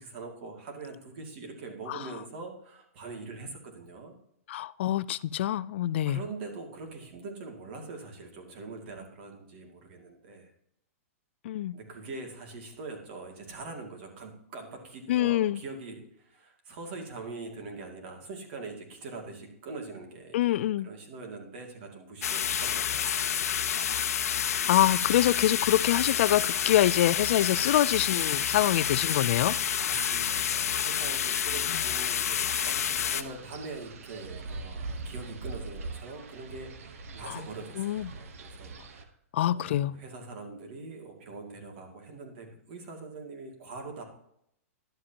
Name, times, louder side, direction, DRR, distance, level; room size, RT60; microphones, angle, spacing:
voice 1, 0.0-4.1 6.1-10.5 11.7-23.5 29.8-39.1 39.5-44.0, right 3 dB, 45° right, 2.3 m, -43 dB
voice 2, 4.5-6.2 11.4-11.7 15.1-15.6 20.3-20.9 24.7-29.5 37.3-37.4 37.8-38.1 39.3-39.9, left 13 dB, 50° left, 0.3 m, -25 dB
sound 1, 22.2-33.2, left 9 dB, 85° left, 0.7 m, -29 dB
Wind, 32.5-39.0, right 3 dB, 65° right, 1.1 m, -42 dB
11.5 x 7.5 x 2.9 m
hypercardioid pair, 160°, 8 cm